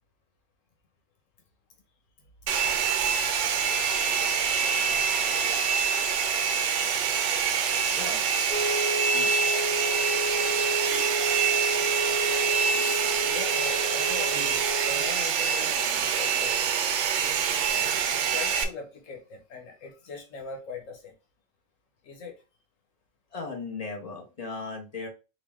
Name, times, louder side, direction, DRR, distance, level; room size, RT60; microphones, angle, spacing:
Domestic sounds home sounds, 2.5-18.6, right 6 dB, 70° right, 0.9 m, -26 dB
voice 1, 7.9-8.2 9.1-9.5 23.3-25.1, left 4 dB, 30° left, 1.1 m, -37 dB
sound 1, 8.5-15.1, right 1 dB, 10° left, 0.9 m, -31 dB
voice 2, 13.2-16.7 17.3-21.1 22.0-22.3, left 4 dB, 90° left, 1.3 m, -42 dB
4.0 x 2.6 x 3.5 m
omnidirectional pair, 1.3 m